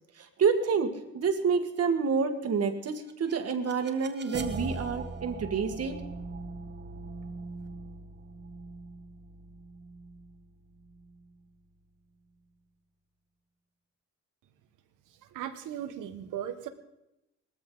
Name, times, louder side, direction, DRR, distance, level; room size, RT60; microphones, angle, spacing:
voice 1, 0.2-6.0, right 5 dB, 55° right, 7 dB, 1.8 m, -28 dB
sound 1, 2.9-11.8, right 3 dB, 35° right, 1.5 m, -41 dB
voice 2, 15.2-16.7, right 10 dB, 85° right, 9 dB, 1.4 m, -37 dB
19.0 x 14.0 x 3.9 m, 0.90 s
cardioid pair, 90°, 30 cm